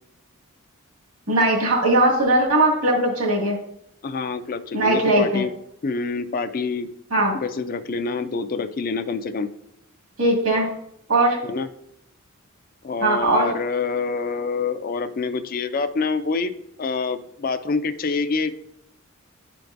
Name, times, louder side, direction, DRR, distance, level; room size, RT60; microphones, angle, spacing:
voice 1, 1.3-3.6 4.7-5.4 7.1-7.3 10.2-10.7 11.1-11.4 13.0-13.5, right 1 dB, 80° right, -3 dB, 2.0 m, -19 dB
voice 2, 4.0-5.5 5.8-6.9 7.3-9.5 11.4-11.7 12.8-18.5, left 4 dB, 40° left, 11 dB, 0.4 m, -26 dB
10.5 x 4.6 x 2.6 m, 0.75 s
head